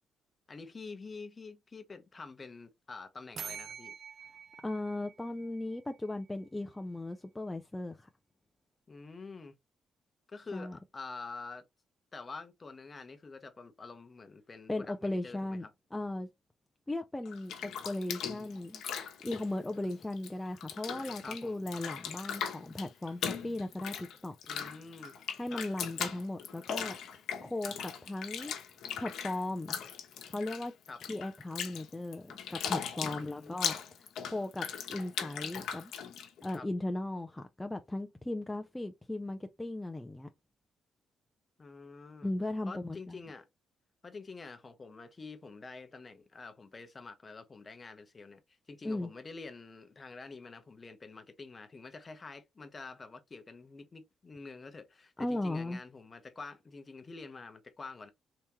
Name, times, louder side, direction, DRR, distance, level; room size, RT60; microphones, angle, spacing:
voice 1, 0.5-3.9 8.9-9.5 10.3-11.6 12.1-15.7 21.2-21.6 24.4-25.2 25.5-25.6 30.9-31.0 33.1-33.6 36.5-36.7 41.6-42.3 42.7-43.5 44.0-48.4 48.7-58.1, left 4 dB, 30° left, 0.7 m, -47 dB
sound 1, 3.4-6.1, right 7 dB, 50° right, 0.6 m, -46 dB
voice 2, 4.6-8.1 10.5-10.8 14.7-16.3 16.9-18.8 19.2-24.4 25.4-27.0 27.4-28.5 29.0-29.7 30.3-30.7 31.1-35.9 36.4-40.3 42.2-43.2 48.8-49.1 55.2-55.8, left 2 dB, 10° left, 0.4 m, -37 dB
Bathtub (filling or washing), 17.2-20.3 20.6-36.5, left 8 dB, 75° left, 0.9 m, -39 dB
3.5 x 2.9 x 2.9 m
cardioid pair, 90°, 0 cm